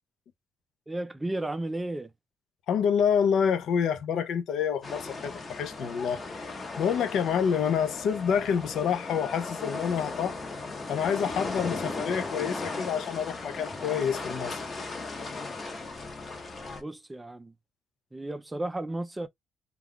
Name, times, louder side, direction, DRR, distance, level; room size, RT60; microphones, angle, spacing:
voice 1, 0.9-2.1 16.8-17.5 18.1-19.3, right 2 dB, 15° right, 0.4 m, -33 dB
voice 2, 2.7-10.4 10.9-14.6, left 7 dB, 80° left, 0.5 m, -28 dB
sound 1, 4.8-16.8, left 3 dB, 35° left, 0.8 m, -37 dB
2.3 x 2.3 x 3.5 m
cardioid pair, 110°, 0 cm